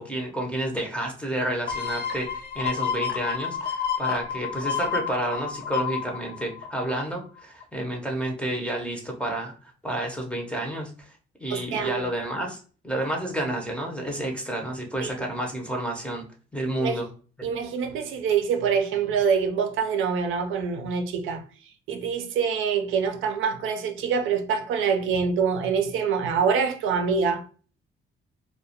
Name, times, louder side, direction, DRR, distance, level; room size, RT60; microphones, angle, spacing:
voice 1, 0.0-11.1 11.4-16.2 16.5-17.1 17.4-17.5, right 1 dB, 5° left, 0.6 m, -30 dB
sound 1, 1.7-7.2 7.6-7.7, left 7 dB, 55° left, 0.5 m, -30 dB
voice 2, 11.5-12.0 15.0-15.1 16.8-17.0 17.4-21.4 21.9-27.4, right 6 dB, 80° right, 0.5 m, -25 dB
2.2 x 2.1 x 2.7 m
cardioid pair, 90°, 20 cm